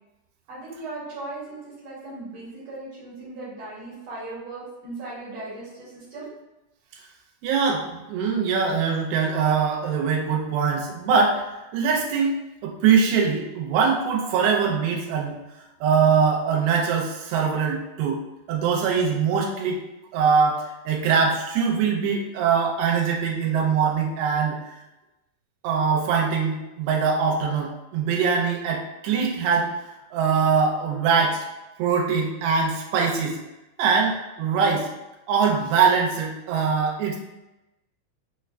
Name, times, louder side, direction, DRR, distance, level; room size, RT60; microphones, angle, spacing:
voice 1, 0.5-6.3, right 2 dB, 65° right, -8 dB, 1.7 m, -37 dB
voice 2, 7.4-12.4 12.6-15.4 15.8-18.2 18.5-19.8 20.1-24.6 25.6-29.7 30.1-31.5 31.8-33.4 33.8-34.9 35.3-37.2, right 6 dB, 85° right, 0 dB, 2.5 m, -22 dB
6.2 x 2.2 x 2.4 m, 0.97 s
omnidirectional pair, 4.6 m